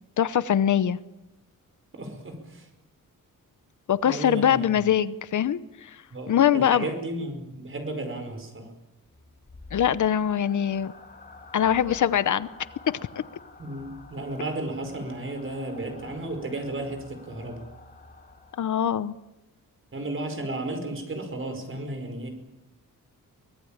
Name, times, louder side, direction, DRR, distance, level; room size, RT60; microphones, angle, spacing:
voice 1, 0.2-1.0 3.9-5.9 6.3-6.9 9.7-10.9 11.5-12.5 12.9-13.0 18.6-19.1, left 9 dB, 60° left, 15 dB, 0.8 m, -23 dB
voice 2, 1.9-2.7 4.0-4.8 6.1-8.7 13.6-17.7 19.9-22.3, right 2 dB, 40° right, 6 dB, 5.1 m, -34 dB
sound 1, 9.0-19.0, left 3 dB, 30° left, 3.5 m, -49 dB
24.0 x 18.0 x 8.9 m, 0.95 s
wide cardioid pair, 160°, 34 cm